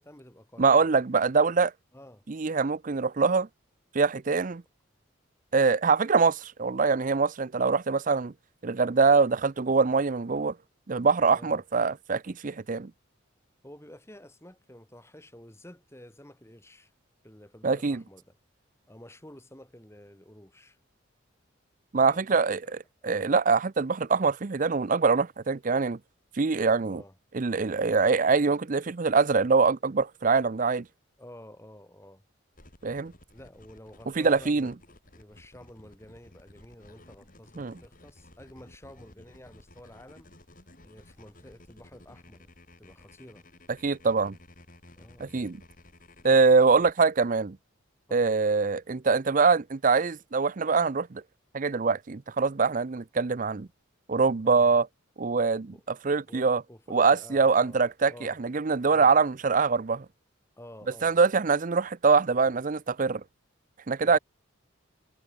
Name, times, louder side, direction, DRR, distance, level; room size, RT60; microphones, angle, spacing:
voice 1, 0.0-0.9 1.9-2.3 11.3-11.6 13.6-16.9 17.2-18.3 18.9-20.8 22.0-22.8 23.0-23.3 26.8-27.1 31.2-32.2 33.3-34.7 35.1-40.3 40.8-42.5 42.8-43.4 44.9-45.3 46.7-46.8 48.1-48.4 54.4-54.7 55.7-55.8 56.1-57.8 58.1-58.4 58.9-59.2 60.6-61.2 64.0-64.2, left 1 dB, 15° left, 3.2 m, -50 dB
voice 2, 0.6-1.7 2.3-3.5 3.9-4.6 5.5-8.3 8.6-10.5 10.9-12.9 17.6-18.0 21.9-22.6 23.0-26.0 26.3-27.0 27.3-30.9 32.8-33.1 34.2-34.7 37.6-37.7 43.8-44.4 45.2-45.6 46.2-47.6 48.1-51.2 51.5-53.7 54.1-54.9 55.2-56.6 56.9-60.1 61.0-63.2 63.9-64.2, right 4 dB, 40° right, 0.5 m, -24 dB
sound 1, 32.5-46.9, left 1 dB, 40° left, 5.2 m, -55 dB
head